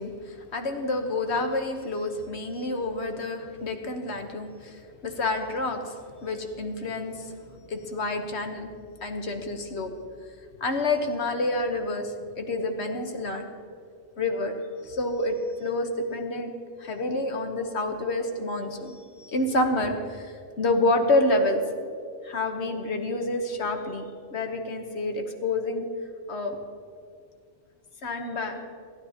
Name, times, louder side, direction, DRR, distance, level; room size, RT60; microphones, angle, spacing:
voice 1, 0.0-6.0 6.2-8.7 9.0-9.9 10.6-13.5 14.2-14.6 14.8-21.6 22.2-24.0 24.3-25.9 26.3-26.6 28.0-28.6, left 2 dB, 70° left, 5 dB, 1.4 m, -28 dB
28.0 x 10.0 x 2.9 m, 2.1 s
omnidirectional pair, 1.2 m